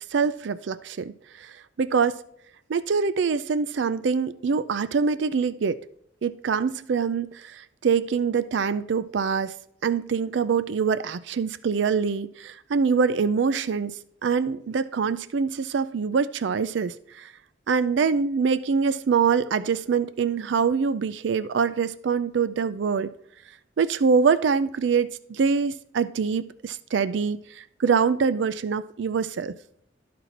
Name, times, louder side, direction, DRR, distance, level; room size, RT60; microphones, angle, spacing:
voice 1, 0.1-2.2 2.7-5.8 6.2-9.5 9.8-14.0 14.2-17.3 17.7-23.1 23.8-29.6, right 5 dB, 70° right, 0.4 m, -24 dB
12.5 x 4.3 x 4.2 m
head